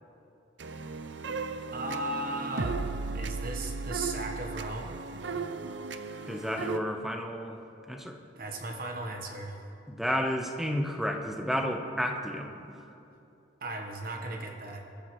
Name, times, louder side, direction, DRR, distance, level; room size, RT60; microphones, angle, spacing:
sound 1, 0.6-6.8, right 4 dB, 65° right, 0.6 m, -36 dB
voice 1, 1.7-2.8 3.1-5.0 8.4-9.6 13.6-14.8, right 2 dB, 45° right, 2 dB, 1.1 m, -36 dB
voice 2, 6.3-7.6 7.9-8.2 9.9-12.7, equal, ahead, 3 dB, 0.9 m, -31 dB
22.0 x 13.5 x 3.1 m, 2.7 s
head